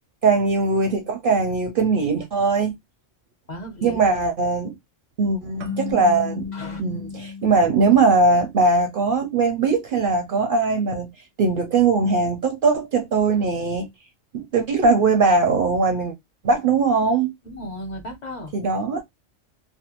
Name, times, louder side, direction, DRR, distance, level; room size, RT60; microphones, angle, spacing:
voice 1, 0.2-2.7 3.8-4.8 5.2-6.4 6.8-11.1 11.4-13.9 14.3-16.1 16.4-17.3 18.5-19.0, right 4 dB, 55° right, 0.6 m, -20 dB
voice 2, 3.5-4.1 6.5-6.8 17.4-18.5, equal, 40° left, 0.8 m, -35 dB
sound 1, 5.6-8.8, left 5 dB, 85° right, 1.0 m, -34 dB
2.5 x 2.2 x 2.7 m
omnidirectional pair, 1.3 m